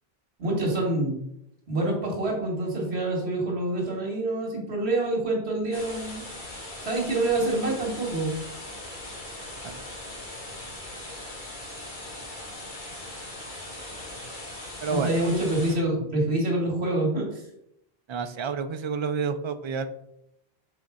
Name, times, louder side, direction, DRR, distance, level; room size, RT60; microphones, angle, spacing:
voice 1, 0.4-1.2 1.7-6.3 6.8-8.3 14.9-17.4, right 2 dB, 85° right, -1 dB, 1.9 m, -26 dB
sound 1, 5.7-15.8, left 1 dB, 50° left, 1.8 m, -40 dB
voice 2, 18.1-19.9, right 5 dB, 45° right, 9 dB, 0.4 m, -29 dB
6.3 x 4.0 x 4.8 m, 0.79 s
omnidirectional pair, 1.1 m